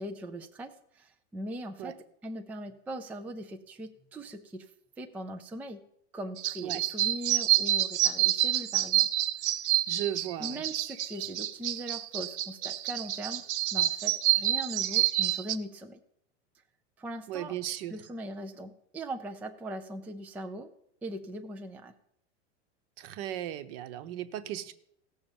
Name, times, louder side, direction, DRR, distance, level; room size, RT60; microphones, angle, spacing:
voice 1, 0.0-2.0 2.2-4.7 5.0-5.8 6.1-9.1 10.4-13.4 13.7-16.0 17.0-17.6 17.9-20.7 21.0-21.9, right 1 dB, 5° right, 4 dB, 0.4 m, -40 dB
sound 1, 6.4-15.6, right 14 dB, 75° right, 0.9 m, -28 dB
voice 2, 9.9-10.6 17.3-18.0 23.0-24.7, right 12 dB, 55° right, 10 dB, 1.1 m, -36 dB
16.5 x 6.5 x 7.2 m, 0.74 s
supercardioid pair, 145°, 35 cm